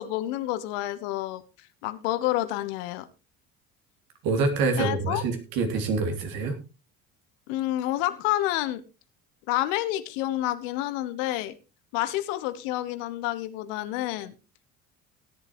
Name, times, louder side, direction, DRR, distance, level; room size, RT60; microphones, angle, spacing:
voice 1, 0.0-1.4 1.8-3.1 4.8-5.2 7.5-8.8 9.5-11.5 11.9-14.3, left 15 dB, 65° left, 12 dB, 1.2 m, -29 dB
voice 2, 4.2-6.6, right 4 dB, 55° right, 5 dB, 3.0 m, -26 dB
16.5 x 10.5 x 3.1 m, 0.30 s
figure-of-eight pair, 60°, 41 cm